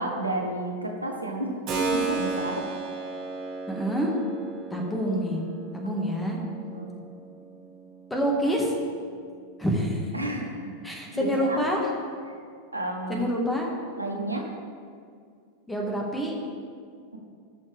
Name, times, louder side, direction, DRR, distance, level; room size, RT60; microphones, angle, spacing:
voice 1, 0.0-1.6 1.9-2.7 6.6-6.9 10.1-10.7 11.1-11.6 12.3-12.4 12.7-13.2 14.0-14.5, right 1 dB, 85° right, 1 dB, 1.1 m, -31 dB
Keyboard (musical), 1.7-10.3, right 4 dB, 40° right, 2.3 m, -35 dB
voice 2, 3.7-4.2 4.7-5.4 5.7-6.4 8.1-8.7 9.6-10.1 10.8-11.8 13.1-13.7 15.7-16.3, equal, 10° left, -1 dB, 1.8 m, -27 dB
17.0 x 6.4 x 3.5 m, 2.2 s
figure-of-eight pair, 90°, 0 cm